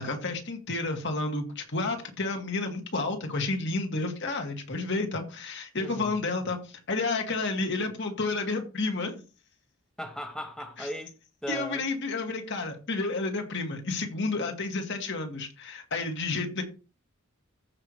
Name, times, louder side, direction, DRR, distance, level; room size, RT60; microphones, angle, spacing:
voice 1, 0.0-9.2 10.8-10.9 11.5-16.6, left 3 dB, 60° left, 2.2 m, -31 dB
voice 2, 5.8-6.1 10.0-11.1 11.4-11.8, equal, 5° left, 1.1 m, -37 dB
15.0 x 5.9 x 3.2 m
head